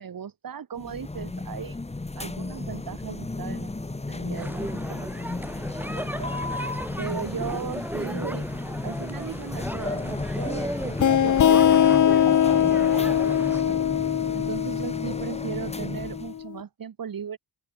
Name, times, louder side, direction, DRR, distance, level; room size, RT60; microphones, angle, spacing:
voice 1, 0.0-1.8 2.2-6.3 7.0-13.8 14.3-17.4, right 7 dB, 50° right, 2.3 m, -38 dB
sound 1, 0.8-16.4, left 2 dB, 15° left, 1.7 m, -34 dB
sound 2, 4.3-13.6, right 1 dB, 5° right, 2.8 m, -36 dB
sound 3, 11.0-16.4, left 10 dB, 40° left, 0.6 m, -21 dB
open air
wide cardioid pair, 160°, 45 cm